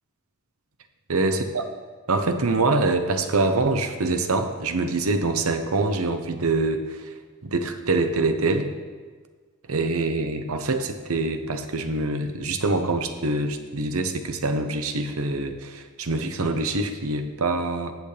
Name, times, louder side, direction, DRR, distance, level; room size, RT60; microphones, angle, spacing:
voice 1, 1.1-1.6 2.1-7.1 7.4-8.7 9.7-17.9, right 3 dB, 75° right, 7 dB, 0.9 m, -25 dB
15.5 x 8.1 x 3.4 m, 1.5 s
head